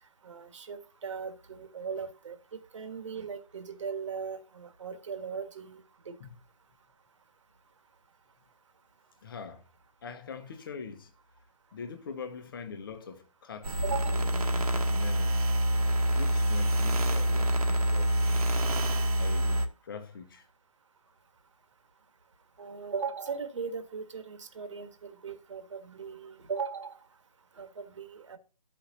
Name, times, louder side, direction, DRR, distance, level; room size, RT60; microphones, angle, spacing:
voice 1, 0.2-6.1 13.8-14.2 22.6-27.1 27.5-28.4, right 5 dB, 50° right, 1.5 m, -38 dB
voice 2, 9.2-9.6 10.0-11.1 11.7-15.5 15.8-18.2 19.2-20.5, left 5 dB, 35° left, 1.1 m, -43 dB
sound 1, 13.6-19.7, equal, 75° right, 1.6 m, -26 dB
13.5 x 5.7 x 2.8 m
hypercardioid pair, 170°, 20 cm